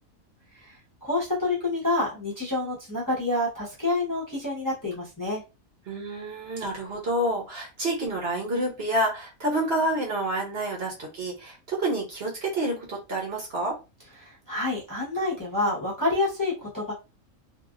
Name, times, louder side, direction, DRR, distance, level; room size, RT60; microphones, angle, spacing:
voice 1, 0.6-5.4 14.2-16.9, left 2 dB, 15° left, -6 dB, 0.9 m, -28 dB
voice 2, 5.9-13.7, right 1 dB, 50° right, -2 dB, 1.0 m, -28 dB
2.9 x 2.6 x 2.4 m, 0.28 s
omnidirectional pair, 1.5 m